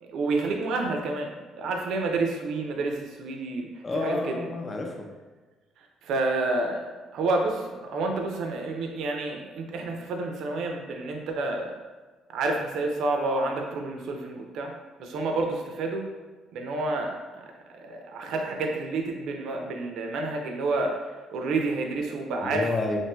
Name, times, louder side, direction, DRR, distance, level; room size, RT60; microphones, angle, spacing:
voice 1, 0.0-4.4 5.8-11.8 12.3-14.7 15.0-16.1 16.5-17.5 17.7-22.6, right 3 dB, 75° right, 2 dB, 0.4 m, -29 dB
voice 2, 3.8-5.1 22.4-23.0, left 3 dB, 35° left, 2 dB, 0.4 m, -30 dB
3.0 x 2.5 x 2.2 m, 1.3 s
supercardioid pair, 75°, 0 cm